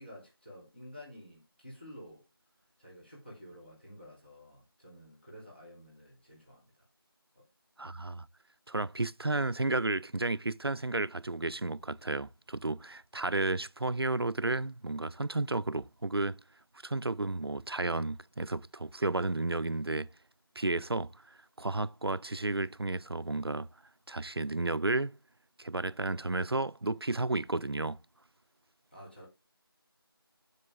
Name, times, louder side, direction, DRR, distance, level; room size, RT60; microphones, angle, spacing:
voice 1, 0.0-2.2 2.8-6.8 7.3-7.4 28.9-29.3, equal, 25° left, 2.7 m, -51 dB
voice 2, 7.8-8.3 8.7-16.4 16.8-20.1 20.6-21.1 21.6-23.7 24.1-25.2 25.6-28.0, right 2 dB, 75° right, 0.5 m, -32 dB
12.0 x 5.5 x 3.4 m
figure-of-eight pair, 175°, 13 cm